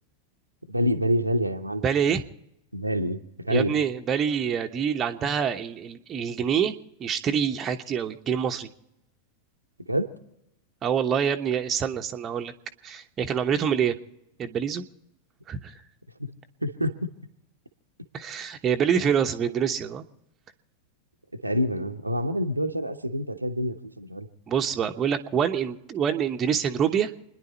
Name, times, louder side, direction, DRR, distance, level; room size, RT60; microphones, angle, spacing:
voice 1, 0.7-1.8 2.7-3.7 9.9-10.1 16.2-16.3 16.6-16.9 19.0-19.1 21.4-24.3, equal, 85° right, 4 dB, 1.0 m, -27 dB
voice 2, 1.8-2.2 3.5-6.7 7.0-8.7 10.8-12.5 12.8-14.0 14.4-14.8 15.5-15.7 18.1-20.0 24.5-27.1, right 8 dB, 25° right, 5 dB, 1.0 m, -26 dB
28.5 x 10.5 x 4.2 m, 0.83 s
figure-of-eight pair, 90°, 0 cm